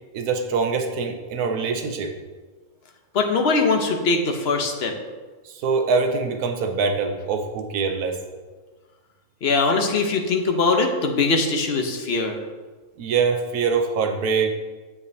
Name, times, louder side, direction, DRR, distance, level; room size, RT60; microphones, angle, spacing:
voice 1, 0.1-2.1 5.5-8.2 13.0-14.5, right 5 dB, 85° right, 5 dB, 1.2 m, -23 dB
voice 2, 3.1-4.9 9.4-12.4, left 3 dB, 50° left, 4 dB, 1.0 m, -21 dB
9.8 x 7.1 x 2.7 m, 1.3 s
omnidirectional pair, 1.5 m